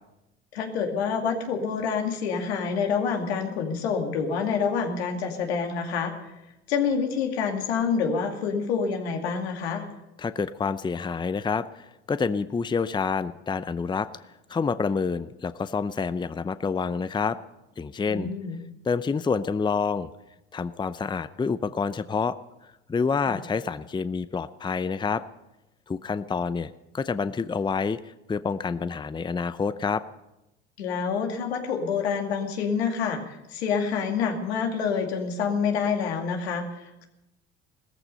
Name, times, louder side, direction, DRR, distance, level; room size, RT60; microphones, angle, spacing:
voice 1, 0.5-6.3 6.7-9.8 18.1-18.6 23.3-23.4 30.8-37.0, left 6 dB, 85° left, 3 dB, 2.4 m, -27 dB
voice 2, 10.2-14.2 14.5-17.4 17.8-18.3 18.8-20.1 20.5-22.4 22.6-25.2 25.9-30.0, left 5 dB, 15° left, 14 dB, 0.6 m, -28 dB
17.0 x 14.0 x 5.5 m, 0.92 s
hypercardioid pair, 70°, 31 cm